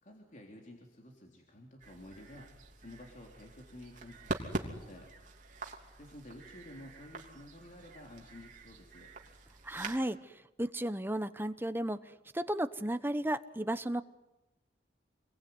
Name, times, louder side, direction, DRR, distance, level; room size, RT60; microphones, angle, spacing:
voice 1, 0.0-2.5 2.8-5.1 6.0-9.1, left 1 dB, 45° left, 0 dB, 3.6 m, -52 dB
sound 1, 1.8-10.0, right 2 dB, 45° right, 3.2 m, -44 dB
voice 2, 9.6-12.0 12.3-14.0, right 1 dB, 10° right, 11 dB, 1.0 m, -34 dB
27.5 x 21.5 x 9.6 m, 0.99 s
head